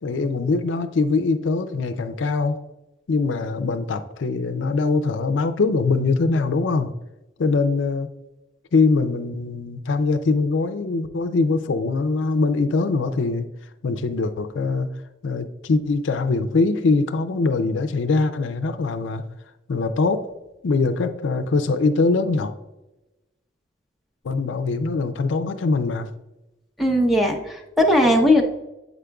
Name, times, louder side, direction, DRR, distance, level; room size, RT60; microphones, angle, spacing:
voice 1, 0.0-2.6 3.1-6.9 7.4-8.1 8.7-13.5 13.8-14.9 15.2-19.2 19.7-20.3 20.6-22.5 24.2-26.1, left 3 dB, 80° left, 9 dB, 0.4 m, -22 dB
voice 2, 26.8-28.4, left 1 dB, ahead, 1 dB, 0.7 m, -18 dB
8.2 x 5.0 x 2.3 m, 0.98 s
head